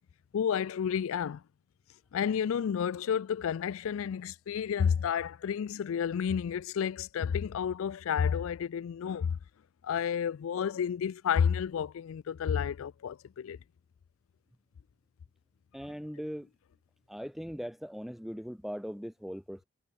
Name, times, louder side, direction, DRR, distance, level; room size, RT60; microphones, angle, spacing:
voice 1, 0.3-1.4 2.1-9.4 9.8-13.6, left 7 dB, 75° left, 0.3 m, -31 dB
voice 2, 15.7-16.5 17.1-19.6, equal, ahead, 0.8 m, -39 dB
head